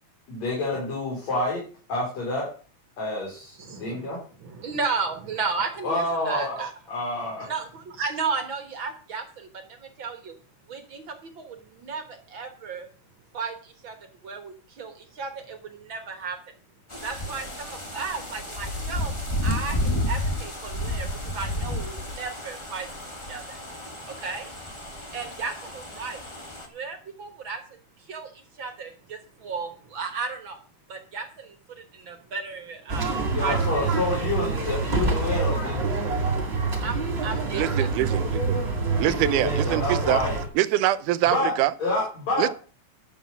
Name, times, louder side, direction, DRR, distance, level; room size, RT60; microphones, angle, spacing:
voice 1, 0.3-1.6 1.9-2.5 3.0-4.2 5.8-6.6 6.9-7.5 33.3-35.9 39.0-40.4 41.3-41.5 41.8-42.4, left 2 dB, 60° left, 5.3 m, -28 dB
voice 2, 3.6-4.1 4.4-6.7 7.4-10.3 10.7-12.9 13.3-14.0 14.2-16.4 17.0-19.1 19.4-21.1 21.3-22.9 23.2-23.6 24.0-24.5 24.9-26.2 26.6-27.6 28.0-30.6 30.9-33.6 33.9-34.3 36.8-38.4, right 4 dB, 55° right, 1.5 m, -34 dB
sound 1, 16.9-26.7, left 1 dB, 30° left, 0.5 m, -31 dB
sound 2, 32.9-40.5, right 3 dB, 25° right, 1.9 m, -26 dB
voice 3, 37.5-38.6 39.0-40.2 40.6-41.7 42.4-42.5, right 14 dB, 85° right, 2.2 m, -24 dB
11.0 x 7.6 x 6.1 m
omnidirectional pair, 3.6 m